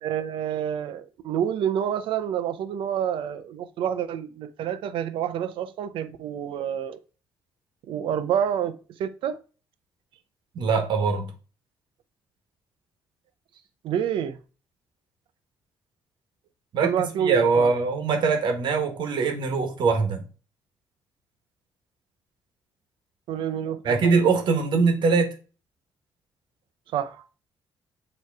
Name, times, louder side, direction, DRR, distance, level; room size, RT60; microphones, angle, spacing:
voice 1, 0.0-7.0 7.9-8.7 9.0-9.4 13.8-14.4 16.8-17.7 23.3-24.0 26.9-27.3, right 9 dB, 80° right, 0.7 m, -28 dB
voice 2, 10.5-11.3 16.7-20.2 23.8-25.3, right 4 dB, 65° right, 1.4 m, -22 dB
7.4 x 3.2 x 4.6 m
cardioid pair, 150°, 9 cm